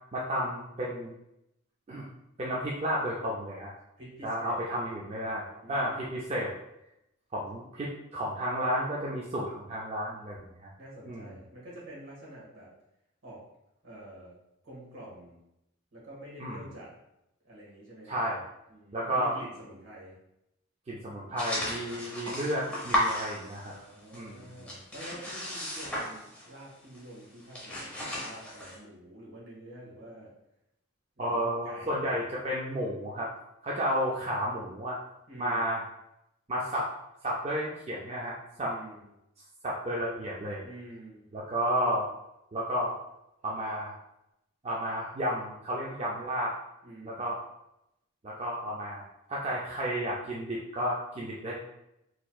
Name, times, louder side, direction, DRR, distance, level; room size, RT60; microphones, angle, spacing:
voice 1, 0.1-1.1 1.9-2.1 2.4-3.7 4.2-6.5 7.3-10.7 11.1-11.3 16.4-16.6 18.1-18.4 18.9-19.3 20.9-23.7 24.1-24.6 31.2-33.3 33.6-35.0 35.4-35.8 36.5-36.9 37.2-38.7 39.6-40.6 41.3-42.1 42.5-43.0 43.4-43.9 44.6-46.5 47.0-47.4 48.2-49.0 49.3-51.5, equal, 30° right, -4 dB, 0.4 m, -32 dB
voice 2, 4.0-4.6 4.9-6.1 10.8-12.7 13.2-13.4 13.8-14.4 14.6-15.4 15.9-16.9 17.4-18.2 18.7-20.2 23.6-30.3 31.2-32.2 35.3-35.8 38.6-39.1 40.6-41.3 46.8-47.3, right 1 dB, 70° right, -6 dB, 1.5 m, -48 dB
sound 1, 21.4-23.9 24.1-26.6 26.9-27.1 27.4-28.8, equal, 5° left, 0.8 m, -34 dB
4.2 x 3.0 x 2.3 m, 0.84 s
head